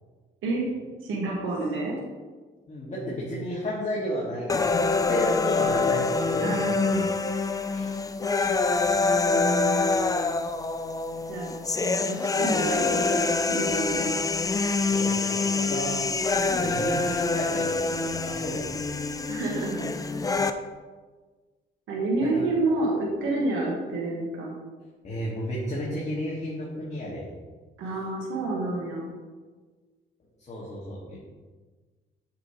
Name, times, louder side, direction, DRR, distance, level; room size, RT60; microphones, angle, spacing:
voice 1, 1.0-2.0 6.4-7.2 9.3-9.9 11.3-11.5 11.8-13.2 13.5-14.0 19.3-19.9 21.9-24.5 27.8-29.1, right 2 dB, 85° right, -2 dB, 1.4 m, -29 dB
voice 2, 2.7-6.9 7.7-7.9 14.8-16.0 16.5-18.8 19.1-19.2 22.2-22.5 25.0-27.2 30.5-31.2, equal, 35° left, -7 dB, 1.7 m, -33 dB
sound 1, 4.5-20.5, left 3 dB, 20° left, 0.4 m, -26 dB
7.7 x 5.3 x 2.9 m, 1.4 s
cardioid pair, 90°, 20 cm